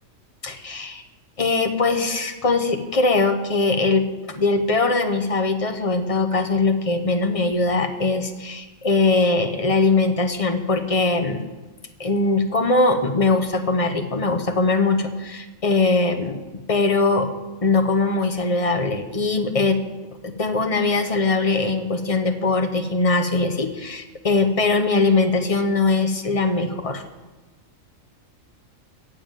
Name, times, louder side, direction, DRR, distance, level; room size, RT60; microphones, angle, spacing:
voice 1, 0.4-1.0 1.4-11.4 12.0-16.4 16.7-17.3 17.6-19.8 20.2-27.0, left 3 dB, 30° left, 6 dB, 1.0 m, -21 dB
11.5 x 7.3 x 9.0 m, 1.2 s
omnidirectional pair, 1.4 m